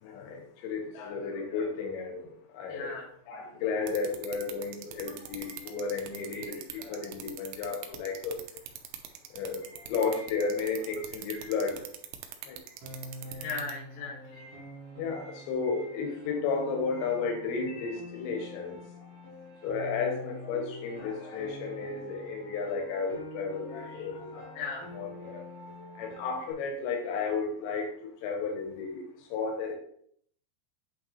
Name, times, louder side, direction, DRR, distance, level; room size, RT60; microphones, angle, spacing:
voice 1, 0.0-2.3 2.5-2.9 3.3-8.4 9.3-11.8 12.5-12.6 14.4-14.7 15.0-18.8 19.6-24.5 24.9-25.4 26.0-27.9 28.2-29.0 29.3-29.7, left 5 dB, 90° left, 2 dB, 3.2 m, -33 dB
voice 2, 2.7-3.1 13.4-14.5 23.8-23.9 24.5-24.9, left 4 dB, 60° left, -4 dB, 3.2 m, -38 dB
sound 1, 3.9-13.7, right 11 dB, 90° right, 3.0 m, -42 dB
Piano, 12.8-26.5, equal, 70° right, 2.8 m, -45 dB
8.6 x 4.1 x 3.2 m, 0.64 s
omnidirectional pair, 5.1 m